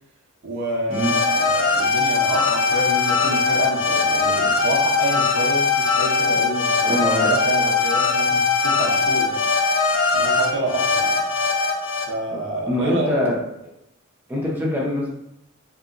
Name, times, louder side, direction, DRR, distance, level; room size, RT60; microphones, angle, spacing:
voice 1, 0.4-9.4 10.1-11.2 12.1-13.1, right 1 dB, 60° right, -1 dB, 0.6 m, -28 dB
sound 1, 0.9-12.0, left 4 dB, 65° left, 0.6 m, -20 dB
voice 2, 6.9-7.3 12.6-13.4 14.3-15.1, left 1 dB, 10° right, -4 dB, 0.5 m, -23 dB
3.2 x 2.8 x 2.4 m, 0.82 s
head